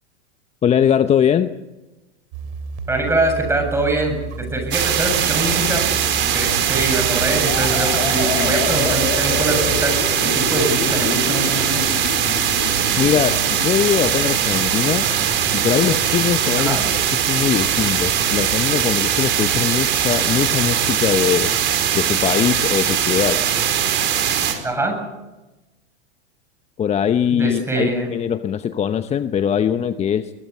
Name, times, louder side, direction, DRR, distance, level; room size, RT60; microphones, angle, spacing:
voice 1, 0.6-1.5 13.0-15.1 15.5-21.5 21.9-23.4 26.8-30.3, left 9 dB, 20° left, 11 dB, 0.8 m, -21 dB
sound 1, 2.3-10.0, right 5 dB, 55° right, 3.3 m, -32 dB
voice 2, 2.9-5.8 6.3-11.9 16.6-16.9 24.6-25.0 27.3-28.1, right 2 dB, 5° right, 4 dB, 7.5 m, -23 dB
sound 2, 4.7-24.5, right 9 dB, 35° right, 4.6 m, -20 dB
sound 3, 7.5-15.1, left 11 dB, 65° left, 2.1 m, -29 dB
22.0 x 21.0 x 8.3 m, 1.0 s
hypercardioid pair, 120°, 34 cm